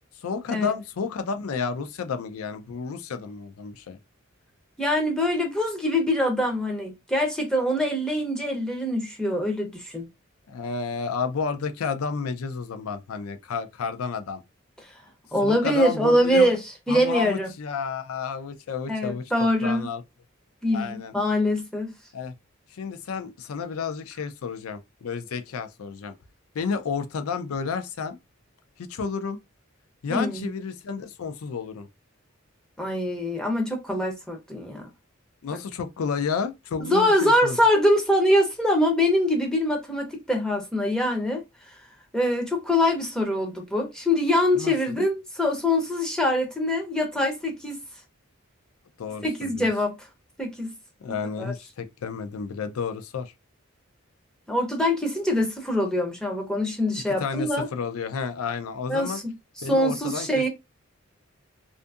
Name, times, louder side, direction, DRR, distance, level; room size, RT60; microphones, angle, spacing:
voice 1, 0.2-4.0 10.5-14.4 15.4-16.5 16.9-20.0 20.7-21.1 22.1-22.3 22.7-26.1 26.5-28.2 28.8-29.4 30.0-31.9 35.4-37.6 44.5-45.0 49.0-49.7 51.0-53.3 57.2-59.2 59.6-60.5, left 5 dB, 85° left, 0.4 m, -31 dB
voice 2, 4.8-10.1 15.3-17.5 18.9-19.9 20.6-21.9 30.1-30.5 32.8-34.9 35.5-35.6 36.8-41.4 42.1-47.8 49.2-50.1 50.4-50.7 51.4-51.5 54.5-57.7 58.9-59.2 59.7-60.5, left 1 dB, 5° left, 0.5 m, -24 dB
2.6 x 2.5 x 2.3 m
head